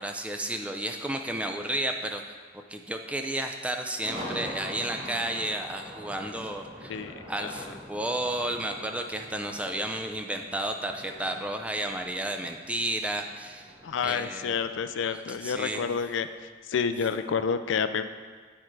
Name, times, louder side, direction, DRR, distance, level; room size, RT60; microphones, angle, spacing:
voice 1, 0.0-2.2 2.5-7.0 7.3-13.7 14.0-14.5 15.0-15.8, right 1 dB, 5° right, 5 dB, 0.4 m, -32 dB
sound 1, 4.0-16.2, equal, 30° right, 1.9 m, -44 dB
voice 2, 13.8-16.3 16.7-18.1, left 6 dB, 80° left, 11 dB, 0.4 m, -29 dB
8.6 x 4.4 x 4.7 m, 1.5 s
head